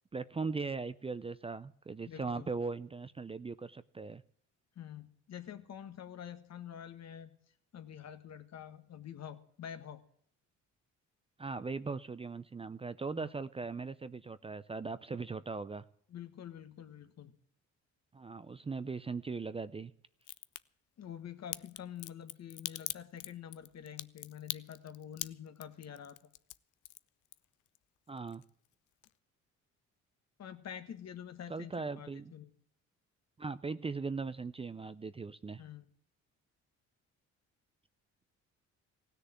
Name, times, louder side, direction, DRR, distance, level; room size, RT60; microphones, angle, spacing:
voice 1, 0.1-4.2 11.4-15.8 18.1-19.9 28.1-28.4 31.5-32.3 33.4-35.6, right 4 dB, 20° right, 14 dB, 0.5 m, -39 dB
voice 2, 2.0-2.5 4.7-7.3 7.7-10.0 13.1-13.3 16.1-17.3 21.0-26.2 30.4-32.5 35.6-35.9, left 9 dB, 60° left, 9 dB, 1.6 m, -47 dB
Crack, 20.2-20.6 21.5-27.8 28.1-28.7 29.0-29.1, left 16 dB, 75° left, 0.6 m, -42 dB
16.5 x 6.7 x 9.3 m, 0.66 s
cardioid pair, 90°, 30 cm